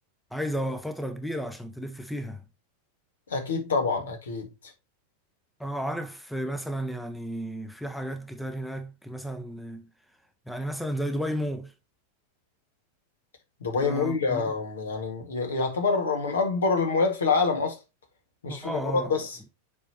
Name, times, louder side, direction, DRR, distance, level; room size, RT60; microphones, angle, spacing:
voice 1, 0.3-2.4 5.6-9.9 10.5-11.7 13.8-14.5 18.5-19.1, equal, ahead, 0.8 m, -33 dB
voice 2, 3.3-4.5 13.6-17.8 18.4-19.4, left 4 dB, 65° left, 1.8 m, -26 dB
7.5 x 4.9 x 2.9 m
figure-of-eight pair, 90°, 0 cm